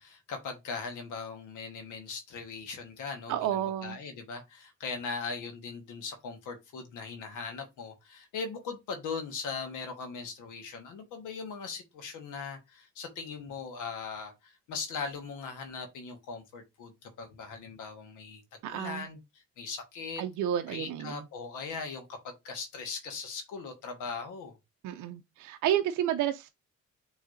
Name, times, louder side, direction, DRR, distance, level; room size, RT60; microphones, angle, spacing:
voice 1, 0.0-18.4 18.7-19.2 19.6-20.2 20.7-24.6, left 5 dB, 85° left, 1.3 m, -39 dB
voice 2, 3.3-4.0 18.6-19.1 20.2-21.2 24.8-26.5, right 11 dB, 80° right, 0.5 m, -31 dB
6.4 x 3.2 x 2.6 m
cardioid pair, 90°, 30 cm